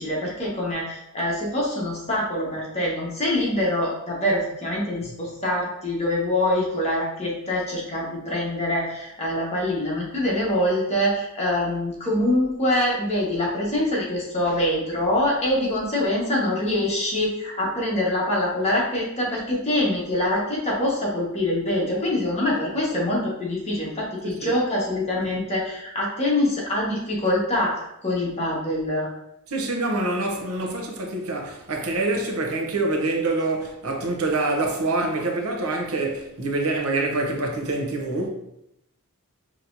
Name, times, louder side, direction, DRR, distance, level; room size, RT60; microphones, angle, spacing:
voice 1, 0.0-29.1, left 1 dB, 30° left, 1.4 m, -24 dB
voice 2, 29.5-38.3, right 2 dB, 85° right, 0.8 m, -26 dB
5.8 x 3.0 x 2.7 m
head